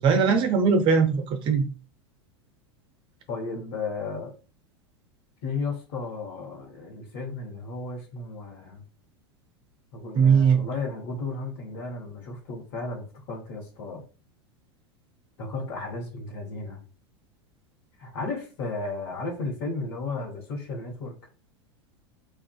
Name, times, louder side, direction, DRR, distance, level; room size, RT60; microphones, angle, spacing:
voice 1, 0.0-1.6 10.2-10.6, right 6 dB, 35° right, 0.5 m, -20 dB
voice 2, 3.3-4.3 5.4-8.8 9.9-14.0 15.4-16.8 18.0-21.1, left 3 dB, 60° left, 1.0 m, -34 dB
2.4 x 2.3 x 2.3 m
figure-of-eight pair, 85°, 14 cm